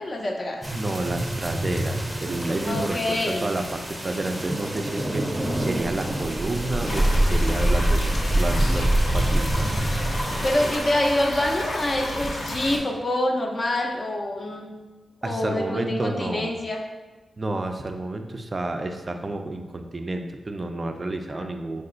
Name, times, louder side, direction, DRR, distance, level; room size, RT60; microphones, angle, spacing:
voice 1, 0.0-0.6 2.7-3.5 10.4-14.7 15.2-16.8 21.3-21.5, left 1 dB, 35° left, 3 dB, 0.5 m, -26 dB
sound 1, 0.6-10.8, right 1 dB, 5° right, 0.7 m, -25 dB
voice 2, 0.7-9.7 15.2-16.5 17.4-21.8, right 2 dB, 30° right, 5 dB, 0.3 m, -30 dB
sound 2, 6.8-12.8, left 1 dB, 90° left, 0.7 m, -32 dB
4.8 x 2.3 x 3.8 m, 1.2 s
wide cardioid pair, 145°, 0 cm